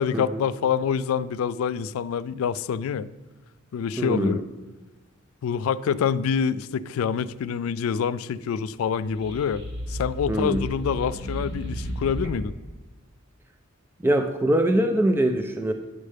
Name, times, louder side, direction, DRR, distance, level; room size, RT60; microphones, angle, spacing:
voice 1, 0.0-3.1 3.7-4.4 5.4-9.6 9.9-12.5, left 7 dB, 85° left, 16 dB, 0.3 m, -26 dB
voice 2, 4.0-4.4 10.3-10.6 14.0-15.7, right 1 dB, 10° right, 6 dB, 0.4 m, -23 dB
sound 1, 8.9-12.6, equal, 60° right, 1.3 m, -33 dB
9.6 x 3.3 x 6.5 m, 1.2 s
head